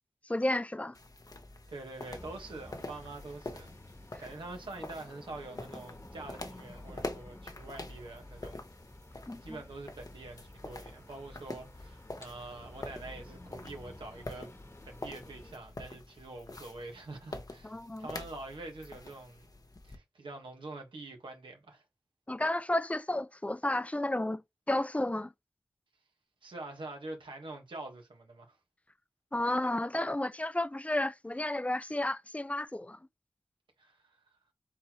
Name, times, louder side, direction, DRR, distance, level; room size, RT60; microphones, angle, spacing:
voice 1, 0.3-1.0 9.3-9.6 17.6-18.1 22.3-24.4 24.7-25.3 29.3-33.0, left 1 dB, 15° left, 0.4 m, -32 dB
sound 1, 0.9-20.0, left 2 dB, 50° left, 0.9 m, -46 dB
voice 2, 1.7-3.7 4.2-8.6 9.1-14.5 14.8-19.5 19.8-21.8 26.4-28.6 33.8-34.2, right 2 dB, 90° right, 1.5 m, -45 dB
sound 2, 2.1-15.5, left 1 dB, 30° left, 1.3 m, -52 dB
4.1 x 4.0 x 3.0 m
cardioid pair, 45°, 8 cm